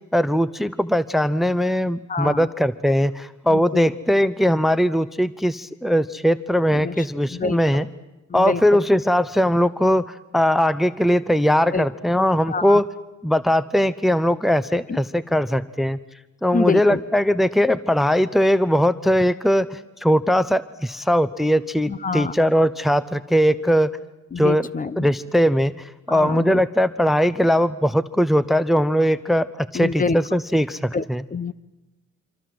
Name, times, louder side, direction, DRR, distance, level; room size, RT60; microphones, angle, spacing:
voice 1, 0.1-7.9 8.3-12.8 13.2-16.0 16.4-23.9 24.4-24.7 25.0-31.2, equal, ahead, 16 dB, 0.8 m, -20 dB
voice 2, 2.1-2.5 3.5-3.9 6.7-6.9 7.3-7.6 8.3-8.8 11.7-11.8 12.5-12.8 14.9-15.0 16.5-17.0 21.9-22.3 24.3-25.1 26.1-26.6 29.7-30.2 30.9-31.0 31.3-31.5, left 4 dB, 25° left, 17 dB, 1.0 m, -26 dB
26.5 x 25.5 x 7.8 m, 1.0 s
cardioid pair, 90°, 30 cm